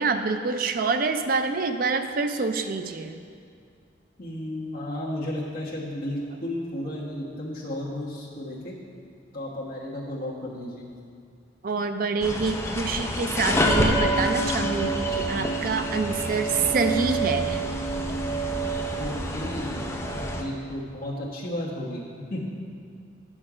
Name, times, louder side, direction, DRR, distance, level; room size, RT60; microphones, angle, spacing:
voice 1, 0.0-3.2 11.6-17.6, right 4 dB, 50° right, 7 dB, 0.5 m, -26 dB
voice 2, 4.2-8.8 9.3-10.9 19.0-22.5, left 1 dB, 50° left, -5 dB, 1.3 m, -33 dB
sound 1, 12.2-20.4, right 1 dB, 15° left, 0.6 m, -27 dB
8.8 x 6.0 x 4.9 m, 2.3 s
head